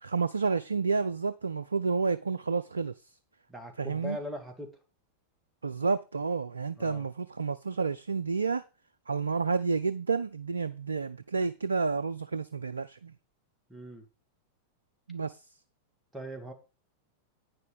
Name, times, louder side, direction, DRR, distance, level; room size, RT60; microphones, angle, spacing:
voice 1, 0.0-2.9 3.8-4.2 5.6-8.6 9.1-13.1 15.1-15.4, right 4 dB, 75° right, 0.4 m, -30 dB
voice 2, 3.5-4.8 6.8-7.1 13.7-14.1 16.1-16.5, equal, 10° right, 2.5 m, -40 dB
9.4 x 6.6 x 5.3 m
figure-of-eight pair, 90°, 0 cm